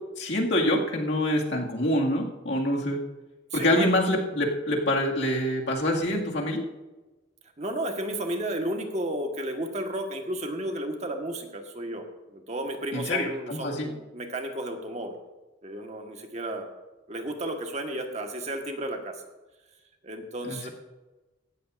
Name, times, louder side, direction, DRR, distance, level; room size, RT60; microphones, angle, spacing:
voice 1, 0.2-3.0 3.5-6.6 12.9-13.9 20.5-20.7, left 1 dB, 70° left, -1 dB, 2.1 m, -26 dB
voice 2, 3.5-3.9 7.6-15.2 15.6-16.7 17.1-19.1 20.0-20.7, right 1 dB, 35° right, 4 dB, 1.5 m, -33 dB
17.5 x 13.0 x 2.6 m, 1.1 s
head